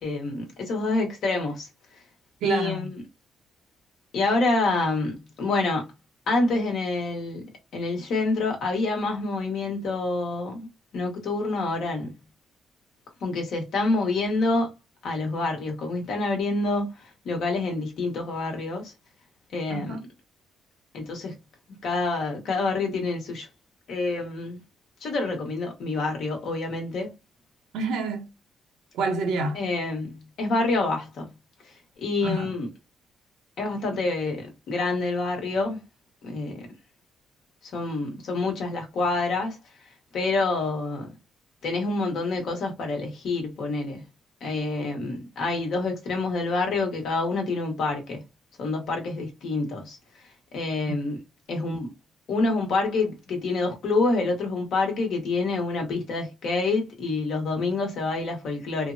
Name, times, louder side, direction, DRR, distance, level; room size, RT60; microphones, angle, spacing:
voice 1, 0.0-1.7 2.4-2.9 4.1-5.9 6.3-10.7 10.9-12.1 13.2-14.7 15.0-18.9 19.5-20.0 20.9-21.4 21.8-23.5 23.9-24.6 25.0-27.1 29.5-31.3 31.6-32.7 33.6-35.8 36.2-36.7 37.7-39.6 40.1-41.1 41.6-44.0 44.4-48.2 48.6-50.0 50.5-51.2 51.5-51.9 52.3-58.9, left 3 dB, 70° left, 1.1 m, -27 dB
voice 2, 2.4-2.9 19.7-20.1 27.7-28.3 28.9-29.6 32.2-32.5 50.9-51.0, right 3 dB, 90° right, 0.7 m, -28 dB
3.2 x 2.0 x 2.6 m
cardioid pair, 90°, 0 cm